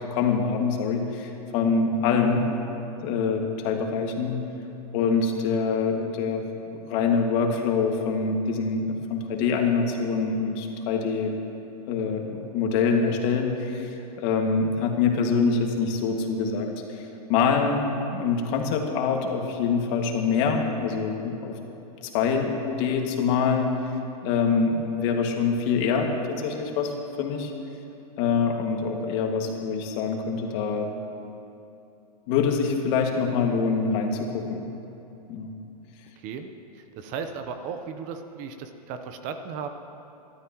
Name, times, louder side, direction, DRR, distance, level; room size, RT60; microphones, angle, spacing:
voice 1, 0.1-2.4 3.0-4.4 4.9-6.4 6.9-11.3 11.9-17.8 18.1-21.6 22.1-23.7 24.2-27.5 28.2-30.9 32.3-34.6 35.3-35.5, left 5 dB, 50° left, 1 dB, 2.1 m, -25 dB
voice 2, 36.2-39.7, right 6 dB, 40° right, 7 dB, 1.0 m, -36 dB
28.5 x 12.5 x 3.1 m, 2.8 s
hypercardioid pair, 135°, 20 cm